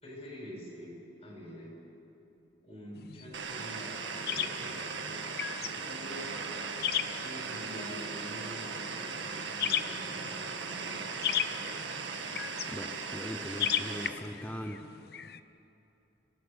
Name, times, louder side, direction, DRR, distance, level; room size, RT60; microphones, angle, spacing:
voice 1, 0.0-1.8 2.6-4.9 5.6-6.3 7.1-11.1, equal, 35° left, -2 dB, 6.4 m, -46 dB
sound 1, 2.9-15.4, left 10 dB, 55° left, 0.7 m, -37 dB
sound 2, 3.3-14.1, right 5 dB, 80° right, 1.8 m, -38 dB
voice 2, 12.7-14.8, equal, 10° left, 4 dB, 0.7 m, -40 dB
26.0 x 18.0 x 7.0 m, 2.9 s
head